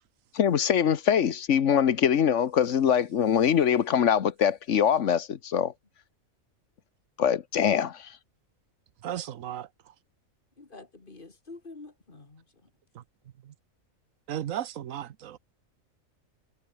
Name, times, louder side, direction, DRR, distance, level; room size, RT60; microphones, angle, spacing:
voice 1, 0.3-5.7 7.2-8.1, left 8 dB, 60° left, 1.3 m, -23 dB
voice 2, 9.0-9.7 12.9-13.0 13.4-13.5 14.3-15.4, right 11 dB, 70° right, 1.2 m, -35 dB
voice 3, 10.6-12.7, left 3 dB, 40° left, 2.2 m, -47 dB
omnidirectional pair, 1.4 m